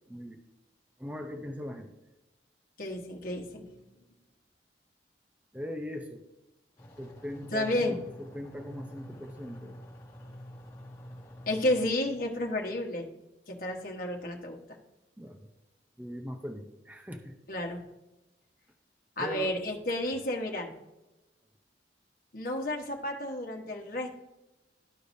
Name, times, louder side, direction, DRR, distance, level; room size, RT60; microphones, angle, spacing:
voice 1, 0.1-0.4 1.0-1.9 5.5-6.2 7.0-9.8 15.2-15.5 16.0-17.4 19.2-19.5, equal, 10° right, 4 dB, 0.6 m, -40 dB
voice 2, 2.8-3.7 7.5-8.0 11.5-13.1 13.5-14.6 17.5-17.8 19.2-20.7 22.3-24.1, left 1 dB, 50° left, 1 dB, 1.2 m, -31 dB
sound 1, 6.8-11.9, equal, 20° left, 1.8 m, -47 dB
13.5 x 4.8 x 2.7 m, 1.0 s
head